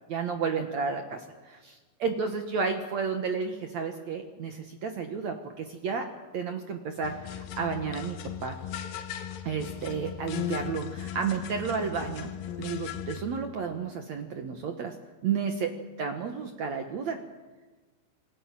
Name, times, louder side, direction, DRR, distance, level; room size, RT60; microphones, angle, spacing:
voice 1, 0.1-6.1 6.3-8.6 9.4-12.3 12.6-14.9 15.2-15.7 16.0-17.2, right 5 dB, 70° right, 5 dB, 1.7 m, -32 dB
sound 1, 7.0-13.2, left 10 dB, 65° left, 2.6 m, -37 dB
27.5 x 19.5 x 7.5 m, 1.3 s
omnidirectional pair, 5.1 m